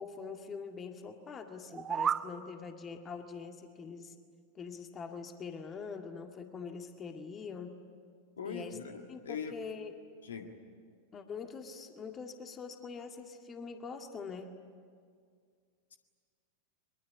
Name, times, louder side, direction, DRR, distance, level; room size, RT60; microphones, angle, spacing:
voice 1, 0.0-4.1 4.5-7.8 8.4-8.8 9.1-9.9 11.1-14.5, left 5 dB, 25° left, 5 dB, 2.0 m, -44 dB
sound 1, 1.6-2.3, right 8 dB, 25° right, 0.6 m, -32 dB
voice 2, 8.4-9.5 10.2-10.5, left 6 dB, 65° left, 5 dB, 1.9 m, -41 dB
23.5 x 23.0 x 10.0 m, 2.1 s
figure-of-eight pair, 90°, 0 cm